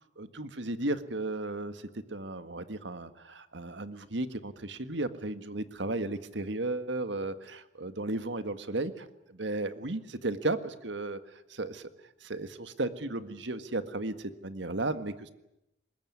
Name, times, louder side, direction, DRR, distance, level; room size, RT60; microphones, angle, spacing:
voice 1, 0.2-1.8 2.1-9.1 9.3-11.2 11.5-11.8 12.2-15.3, right 2 dB, 70° right, 11 dB, 1.7 m, -34 dB
24.0 x 21.0 x 9.7 m, 0.89 s
head